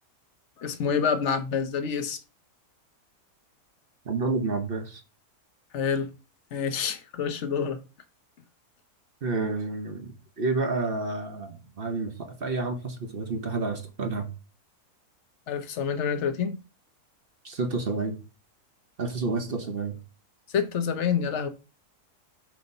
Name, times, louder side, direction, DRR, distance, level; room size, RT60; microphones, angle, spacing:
voice 1, 0.6-2.2 5.7-6.1 6.5-7.8 15.5-16.5 20.5-21.5, left 7 dB, 50° left, 1.1 m, -27 dB
voice 2, 4.0-5.0 9.2-14.3 17.4-18.2 19.0-20.0, right 3 dB, 45° right, 0.9 m, -30 dB
7.9 x 2.8 x 5.3 m
omnidirectional pair, 1.7 m